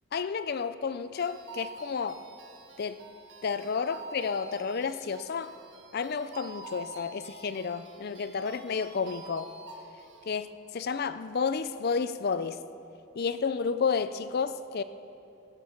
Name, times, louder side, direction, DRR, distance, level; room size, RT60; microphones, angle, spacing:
voice 1, 0.1-2.2 2.8-3.0 3.4-5.5 5.9-9.5 10.3-12.6 13.2-14.8, left 5 dB, 45° left, 13 dB, 0.4 m, -31 dB
sound 1, 1.2-10.3, right 2 dB, 55° right, 1.7 m, -47 dB
16.5 x 12.5 x 6.4 m, 2.8 s
head